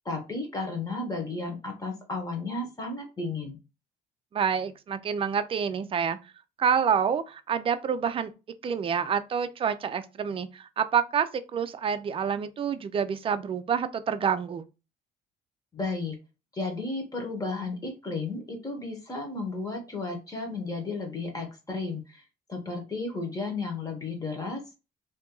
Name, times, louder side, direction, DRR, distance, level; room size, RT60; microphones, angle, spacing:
voice 1, 0.0-3.6 15.7-16.2 16.5-22.2 22.5-24.7, left 3 dB, 20° left, 1.2 m, -33 dB
voice 2, 4.3-6.2 6.6-8.3 8.6-14.7, right 7 dB, 35° right, 0.4 m, -27 dB
2.8 x 2.5 x 3.7 m
cardioid pair, 110°, 17 cm